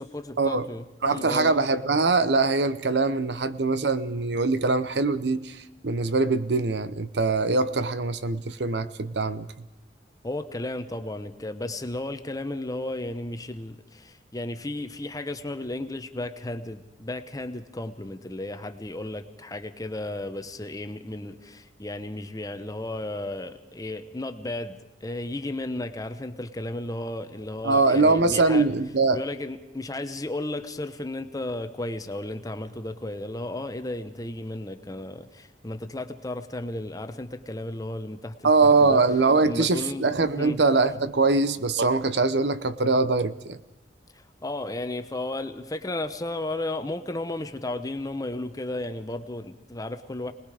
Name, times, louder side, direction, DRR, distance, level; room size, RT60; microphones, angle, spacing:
voice 1, 0.0-1.5 10.2-28.7 29.1-39.0 39.4-40.1 40.4-40.6 44.1-50.3, left 2 dB, 20° left, 8 dB, 1.0 m, -34 dB
voice 2, 1.0-5.6 5.8-9.5 27.6-29.2 38.4-43.6, right 3 dB, 70° right, 13 dB, 0.8 m, -22 dB
29.5 x 20.0 x 5.0 m, 0.96 s
head